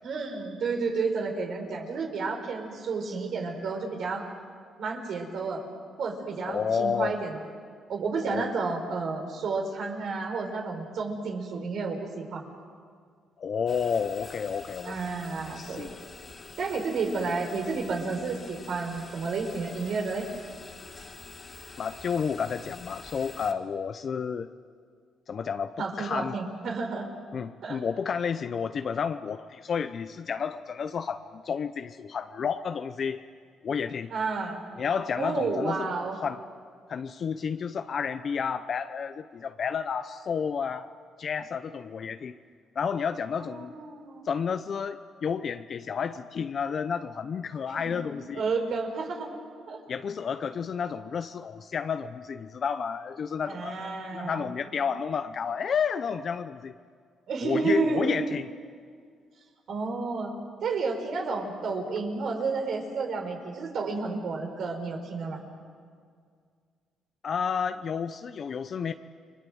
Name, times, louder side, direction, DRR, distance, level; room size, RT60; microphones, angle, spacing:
voice 1, 0.0-4.3 4.8-5.6 6.0-7.4 7.9-12.4 14.8-15.9 16.6-20.3 25.8-27.1 27.6-27.8 34.1-34.6 35.2-36.1 43.3-44.2 47.7-47.9 48.3-49.3 49.7-49.8 53.5-54.5 57.3-58.1 59.7-60.3 60.6-65.4, right 4 dB, 65° right, 3 dB, 5.0 m, -31 dB
voice 2, 6.5-7.2 8.2-8.4 13.4-15.1 15.4-15.9 21.8-24.5 25.3-26.4 27.3-33.2 33.6-34.1 34.8-35.9 36.2-36.4 36.9-40.9 41.2-42.4 42.8-43.7 44.2-48.4 49.9-56.7 57.4-58.4 67.2-68.9, left 6 dB, 50° left, 9 dB, 0.8 m, -31 dB
sound 1, 13.7-23.5, left 3 dB, 35° left, 3.4 m, -46 dB
30.0 x 22.0 x 7.9 m, 2.1 s
cardioid pair, 90°, 0 cm